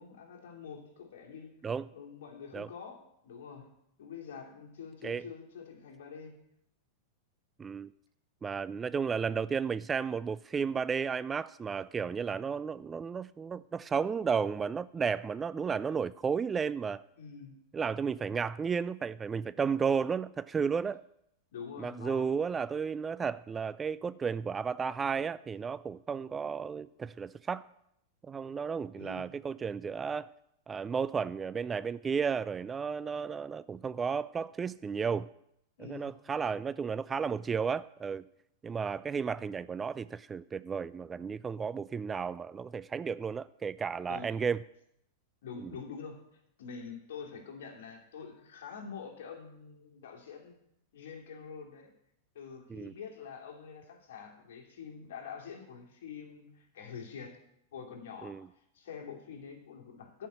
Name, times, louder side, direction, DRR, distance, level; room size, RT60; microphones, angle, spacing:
voice 1, 0.0-1.5 1.9-3.7 4.0-6.4 17.2-17.6 21.5-22.4 28.9-29.3 35.8-36.1 44.1-44.3 45.4-46.2 46.6-50.6 50.9-51.9 52.3-57.4 57.7-58.3 58.7-60.3, left 6 dB, 65° left, 1 dB, 2.7 m, -46 dB
voice 2, 7.6-7.9 8.4-17.0 17.7-21.0 21.8-27.7 28.3-30.3 30.7-35.3 35.8-38.3 38.6-44.6 45.6-45.7 52.7-52.9 58.2-58.5, right 6 dB, 20° right, 17 dB, 0.3 m, -33 dB
10.5 x 5.6 x 8.0 m, 0.76 s
hypercardioid pair, 105°, 0 cm